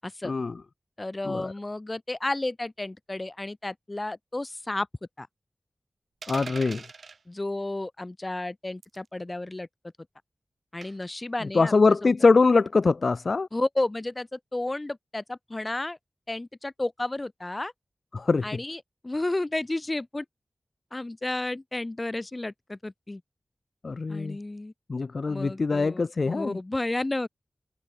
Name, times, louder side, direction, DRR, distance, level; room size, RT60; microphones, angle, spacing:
voice 1, 0.0-0.3 1.0-4.9 5.2-5.3 7.3-9.7 10.7-12.1 13.5-16.0 16.3-17.7 18.4-20.3 20.9-23.2 24.1-24.7 25.3-27.3, left 2 dB, 30° left, 5.6 m, -32 dB
sound 1, 6.2-7.2 8.8-9.1 10.8-11.1, right 4 dB, 85° right, 6.6 m, -41 dB
voice 2, 6.3-6.8 11.5-13.5 18.1-18.4 23.8-24.4 24.9-26.6, left 4 dB, 65° left, 1.6 m, -23 dB
wide cardioid pair, 95°, 0 cm